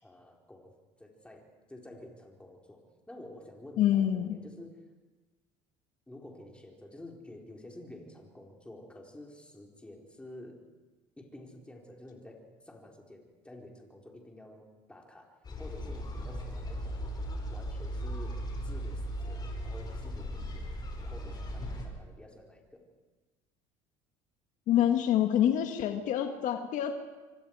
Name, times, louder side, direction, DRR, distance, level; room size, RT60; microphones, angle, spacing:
voice 1, 0.0-4.9 6.1-10.6 11.2-17.1 17.5-20.7 21.0-22.9, left 1 dB, 10° left, 0 dB, 4.4 m, -50 dB
voice 2, 3.8-4.4 24.7-26.9, left 10 dB, 60° left, 5 dB, 1.7 m, -26 dB
sound 1, 15.4-21.9, equal, 30° left, 5.4 m, -37 dB
27.0 x 24.5 x 4.9 m, 1.2 s
supercardioid pair, 100°, 14 cm